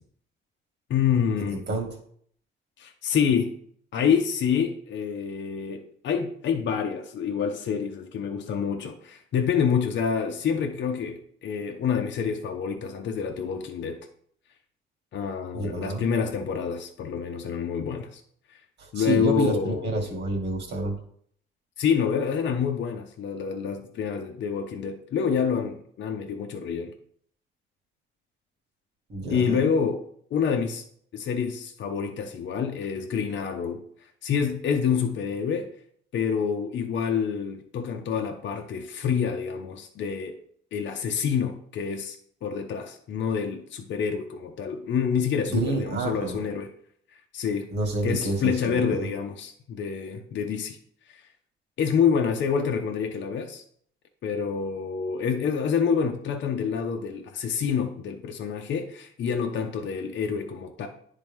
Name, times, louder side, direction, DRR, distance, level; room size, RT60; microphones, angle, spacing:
voice 1, 0.9-1.6 2.8-3.5 3.9-14.0 15.1-18.2 18.5-18.6 18.9-20.2 21.8-26.9 29.3-30.0 30.3-30.8 31.1-33.8 34.2-35.7 36.1-40.4 40.7-42.2 42.4-46.7 47.3-47.7 48.0-50.8 51.1-51.2 51.8-53.6 54.2-60.9, left 7 dB, 65° left, 3 dB, 0.8 m, -27 dB
voice 2, 1.5-1.9 15.5-16.1 18.8-21.0 29.1-29.6 45.5-46.4 47.7-49.1, right 2 dB, 60° right, 1 dB, 2.1 m, -28 dB
10.5 x 3.7 x 3.6 m, 0.62 s
cardioid pair, 90°, 20 cm